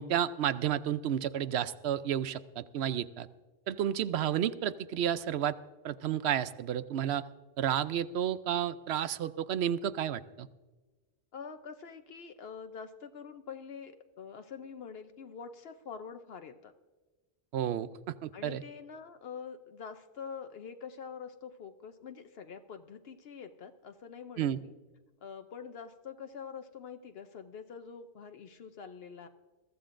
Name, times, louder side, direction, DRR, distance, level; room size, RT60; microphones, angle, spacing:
voice 1, 0.0-3.3 3.7-5.5 5.8-7.2 7.6-10.5 17.5-18.6 24.4-24.6, right 10 dB, 80° right, 14 dB, 0.8 m, -31 dB
voice 2, 11.3-16.7 18.3-24.7 25.2-29.3, left 6 dB, 70° left, 7 dB, 0.9 m, -45 dB
22.0 x 14.0 x 2.5 m, 1.2 s
omnidirectional pair, 1.1 m